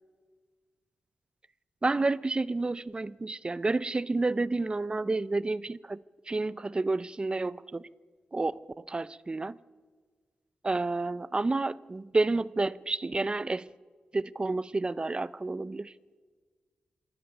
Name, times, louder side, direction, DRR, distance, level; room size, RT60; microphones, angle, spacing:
voice 1, 1.8-6.0 6.3-7.9 8.3-9.6 10.6-13.7 14.1-15.9, right 3 dB, 30° right, 0.7 m, -30 dB
27.5 x 20.0 x 6.8 m
cardioid pair, 75°, 3 cm